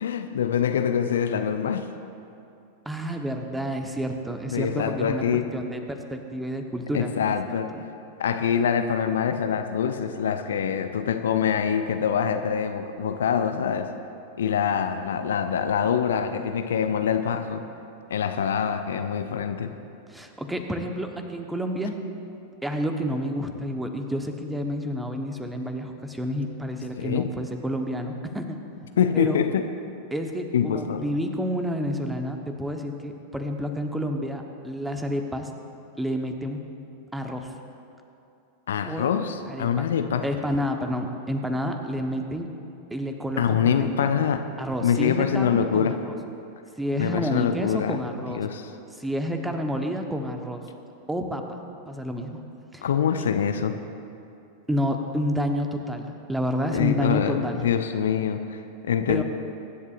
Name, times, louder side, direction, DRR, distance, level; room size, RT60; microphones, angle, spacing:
voice 1, 0.0-1.9 4.5-5.5 6.9-7.7 8.2-13.9 14.4-17.6 18.1-19.7 27.0-27.3 29.0-29.7 30.5-31.0 38.7-40.2 43.4-44.4 44.8-45.9 47.0-48.0 48.3-48.7 52.8-53.8 56.7-59.2, left 8 dB, 65° left, 8 dB, 0.6 m, -25 dB
voice 2, 2.8-7.8 20.1-22.0 22.6-28.6 29.1-29.4 30.1-35.5 36.0-36.6 37.1-37.5 38.8-39.2 39.5-39.9 40.2-42.5 42.9-44.1 44.6-46.1 46.8-48.4 49.0-50.6 51.1-51.4 51.9-52.4 52.7-52.9 54.7-57.7 59.1-59.2, equal, 5° right, 4 dB, 1.1 m, -29 dB
23.5 x 11.0 x 2.5 m, 2.7 s
figure-of-eight pair, 90°, 0 cm